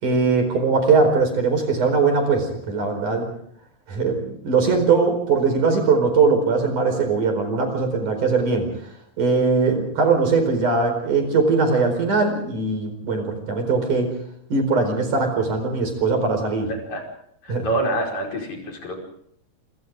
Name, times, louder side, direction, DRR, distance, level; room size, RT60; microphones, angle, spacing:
voice 1, 0.0-3.3 3.9-8.7 9.2-14.1 14.5-16.7 17.5-17.7, right 4 dB, 60° right, 6 dB, 6.0 m, -20 dB
voice 2, 16.7-17.0 17.4-19.0, right 1 dB, 55° left, 1 dB, 6.4 m, -26 dB
27.0 x 25.5 x 3.8 m, 0.68 s
omnidirectional pair, 4.1 m